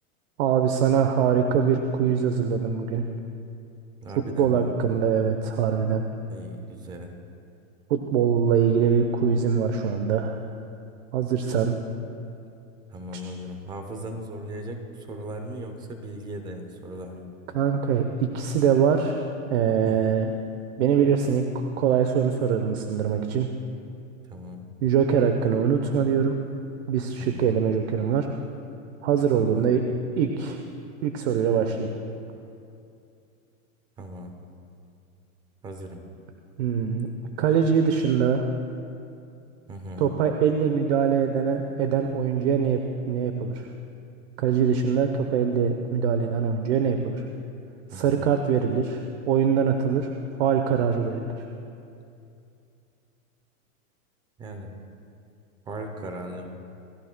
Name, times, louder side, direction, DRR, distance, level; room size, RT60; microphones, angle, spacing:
voice 1, 0.4-3.1 4.1-6.0 7.9-10.4 11.1-11.8 13.1-13.2 17.5-19.2 19.5-20.3 20.8-23.5 24.8-26.3 26.9-28.3 29.0-29.8 30.2-30.6 31.0-31.9 36.6-37.1 37.4-38.5 40.0-43.7 44.4-47.2 47.9-50.1 50.4-51.5, right 7 dB, 50° right, 5 dB, 0.9 m, -23 dB
voice 2, 4.0-4.7 6.3-7.2 11.7-11.8 12.9-17.3 19.8-20.1 24.3-24.7 27.2-27.5 29.4-29.7 34.0-34.3 35.6-36.0 39.7-40.1 47.9-48.2 54.4-54.8 55.7-56.5, right 1 dB, 10° right, 5 dB, 0.6 m, -38 dB
27.5 x 15.0 x 2.2 m, 2.6 s
supercardioid pair, 165°, 42 cm